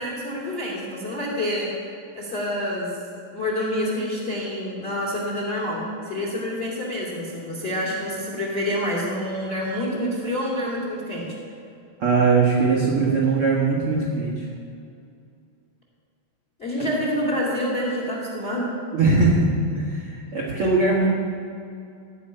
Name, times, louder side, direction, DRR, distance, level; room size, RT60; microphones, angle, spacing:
voice 1, 0.0-2.9 3.3-11.3 16.6-18.7, left 1 dB, 20° left, -2 dB, 1.9 m, -27 dB
voice 2, 12.0-14.5 16.8-16.9 18.9-21.1, right 3 dB, 60° right, -4 dB, 1.5 m, -20 dB
17.0 x 5.7 x 9.9 m, 2.5 s
omnidirectional pair, 5.1 m